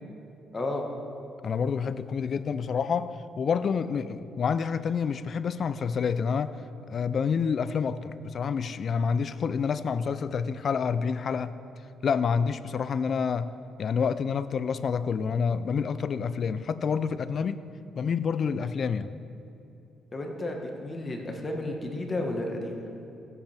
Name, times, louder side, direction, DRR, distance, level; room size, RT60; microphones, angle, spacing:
voice 1, 0.5-0.9 20.1-22.9, left 1 dB, 30° left, 2 dB, 1.5 m, -32 dB
voice 2, 1.4-6.6 6.9-11.6 12.0-13.5 13.8-17.7 18.0-19.1, left 6 dB, 55° left, 14 dB, 0.4 m, -28 dB
16.0 x 8.2 x 3.5 m, 2.9 s
cardioid pair, 90°, 0 cm